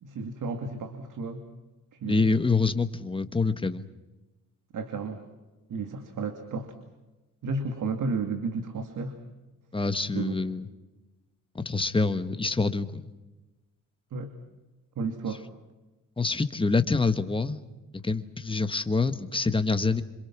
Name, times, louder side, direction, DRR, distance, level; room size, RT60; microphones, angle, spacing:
voice 1, 0.0-1.4 1.9-2.3 4.7-5.2 5.7-6.7 7.4-9.2 10.1-10.4 14.1-14.3 15.0-15.4, right 4 dB, 70° right, 7 dB, 2.6 m, -32 dB
voice 2, 2.1-3.8 9.7-10.6 11.5-13.1 16.2-17.6 17.9-20.0, left 3 dB, 15° left, 9 dB, 1.4 m, -26 dB
27.0 x 26.0 x 6.1 m, 1.1 s
cardioid pair, 120°, 32 cm